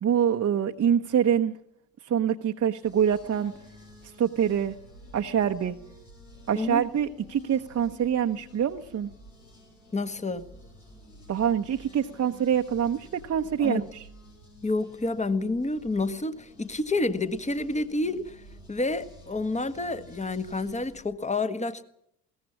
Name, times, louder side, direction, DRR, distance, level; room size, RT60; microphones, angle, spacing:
voice 1, 0.0-1.6 2.0-3.5 4.2-4.7 5.1-5.8 6.5-9.1 11.3-14.0, right 8 dB, 30° right, 4 dB, 1.1 m, -25 dB
sound 1, 2.8-21.0, left 2 dB, 85° left, 6.8 m, -51 dB
voice 2, 9.9-10.5 13.6-13.9 14.6-18.4 18.7-21.8, left 2 dB, 15° left, 12 dB, 1.6 m, -29 dB
22.0 x 18.0 x 7.3 m, 0.74 s
figure-of-eight pair, 60°, 48 cm